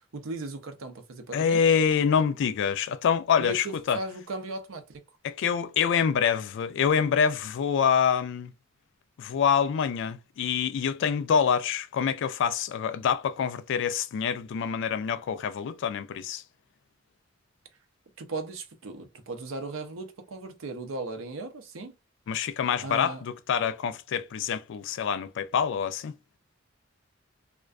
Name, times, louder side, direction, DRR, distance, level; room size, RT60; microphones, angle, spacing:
voice 1, 0.1-1.6 3.4-5.0 18.2-21.9 22.8-23.2, right 2 dB, 80° right, 0.6 m, -37 dB
voice 2, 1.3-4.0 5.2-8.5 9.2-16.4 22.3-26.1, left 7 dB, 60° left, 0.3 m, -26 dB
2.4 x 2.2 x 2.3 m
head